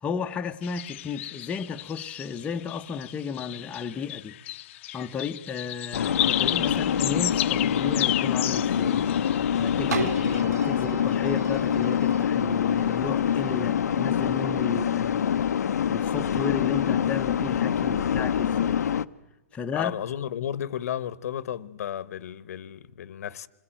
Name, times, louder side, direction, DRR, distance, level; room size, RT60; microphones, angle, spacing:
voice 1, 0.0-4.3 4.9-9.0 9.6-15.2 15.9-18.8 19.5-19.9, left 6 dB, 15° left, 0.9 m, -33 dB
sound 1, 0.6-10.4, left 15 dB, 50° left, 0.8 m, -33 dB
sound 2, 5.9-19.0, left 8 dB, 85° left, 0.8 m, -25 dB
sound 3, 9.9-15.6 16.2-16.3, right 3 dB, 85° right, 1.9 m, -38 dB
voice 2, 19.7-23.5, left 10 dB, 70° left, 1.1 m, -33 dB
26.5 x 20.5 x 9.0 m
hypercardioid pair, 150°, 9 cm